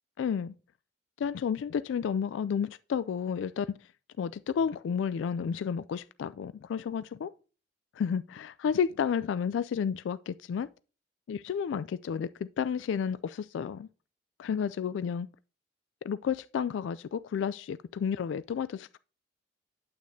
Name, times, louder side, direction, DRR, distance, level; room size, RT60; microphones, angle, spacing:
voice 1, 0.2-0.5 1.2-3.9 4.2-7.3 8.0-10.7 11.3-13.9 14.4-15.3 16.0-19.0, left 7 dB, 90° left, 0.3 m, -31 dB
9.1 x 8.3 x 2.7 m
head